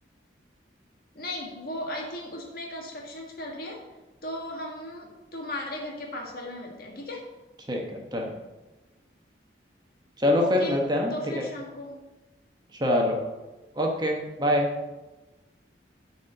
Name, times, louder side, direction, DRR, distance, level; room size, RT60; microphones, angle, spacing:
voice 1, 1.1-3.8 4.2-7.2 10.4-10.7 11.1-12.0, left 1 dB, 55° left, 0 dB, 1.6 m, -36 dB
voice 2, 7.7-8.3 10.2-11.5 12.7-13.2 13.7-14.7, left 1 dB, 25° right, 1 dB, 1.0 m, -25 dB
8.4 x 4.3 x 6.5 m, 1.1 s
head